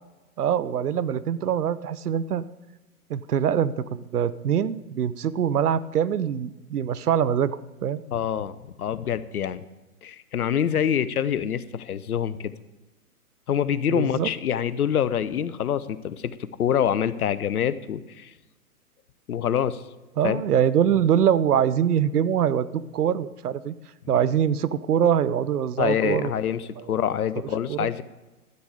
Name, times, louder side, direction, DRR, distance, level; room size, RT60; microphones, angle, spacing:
voice 1, 0.4-2.5 3.1-7.6 7.8-8.0 13.9-14.3 20.2-23.8 24.1-26.3 26.8-26.9 27.7-27.9, right 9 dB, 75° right, 17 dB, 0.7 m, -23 dB
voice 2, 8.1-9.6 10.0-12.5 13.5-18.3 19.3-19.8 20.2-20.4 25.8-28.0, left 9 dB, 70° left, 16 dB, 0.8 m, -26 dB
12.5 x 8.1 x 5.0 m, 1.1 s
figure-of-eight pair, 120°, 46 cm